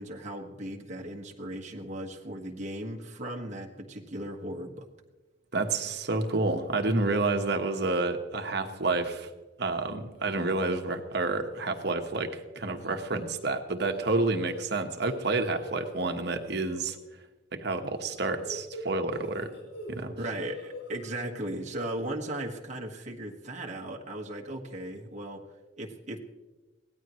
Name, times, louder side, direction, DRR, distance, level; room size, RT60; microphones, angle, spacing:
voice 1, 0.0-4.9 20.2-25.4 25.8-26.2, right 1 dB, 40° right, 0 dB, 1.7 m, -37 dB
voice 2, 5.5-9.3 9.6-17.0 17.5-19.5 19.9-20.2, right 3 dB, 65° right, 6 dB, 1.4 m, -29 dB
sound 1, 10.1-10.6 11.0-11.3 11.5-11.6 12.8-13.4 13.8-16.8 17.9-20.0 20.3-21.1, equal, 75° left, 7.2 m, -44 dB
23.5 x 17.5 x 3.2 m, 1.2 s
head